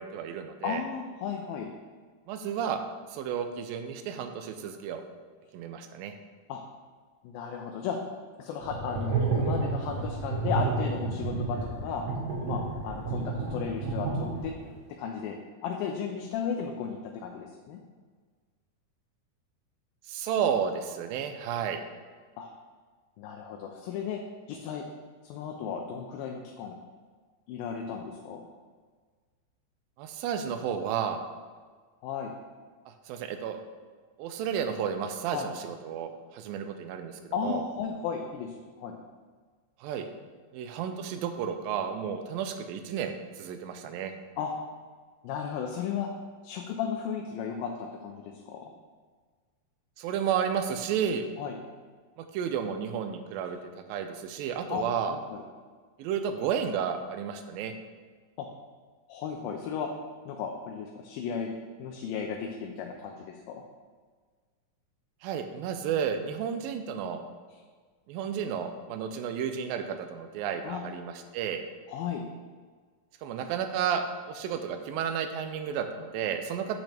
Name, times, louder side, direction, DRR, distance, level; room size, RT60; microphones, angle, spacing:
voice 1, 0.0-0.8 2.3-2.8 3.1-5.0 5.5-6.1 20.1-21.8 30.0-31.2 32.9-33.6 34.2-37.6 39.8-40.1 40.5-44.1 50.0-51.3 52.2-53.6 53.9-55.2 56.0-57.7 65.2-67.2 68.1-71.6 73.2-76.8, right 8 dB, 85° right, 7 dB, 2.3 m, -32 dB
voice 2, 0.6-1.7 6.5-6.6 7.2-8.0 8.4-12.0 12.4-14.5 15.0-15.4 15.6-17.8 22.4-22.5 23.2-24.2 24.5-24.8 25.2-26.8 27.5-28.4 32.0-32.3 35.3-35.5 37.3-39.0 44.4-44.5 45.2-46.1 46.4-48.7 51.4-51.6 54.7-55.4 58.4-58.5 59.1-59.9 60.3-63.2 63.5-63.6 70.6-70.8 71.9-72.2, left 7 dB, 85° left, 1 dB, 2.4 m, -35 dB
sound 1, 8.6-14.7, right 4 dB, 55° right, 1.4 m, -30 dB
8.2 x 6.1 x 3.4 m, 1.5 s
omnidirectional pair, 4.1 m